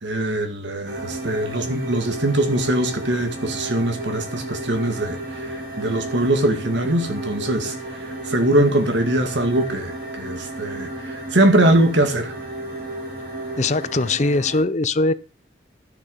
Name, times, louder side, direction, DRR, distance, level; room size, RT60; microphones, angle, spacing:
voice 1, 0.0-7.7 8.3-12.3, right 1 dB, 80° right, 2.1 m, -22 dB
sound 1, 0.8-14.6, right 1 dB, 55° right, 7.2 m, -33 dB
voice 2, 13.6-15.1, left 3 dB, 40° left, 0.6 m, -21 dB
12.0 x 6.8 x 5.4 m
head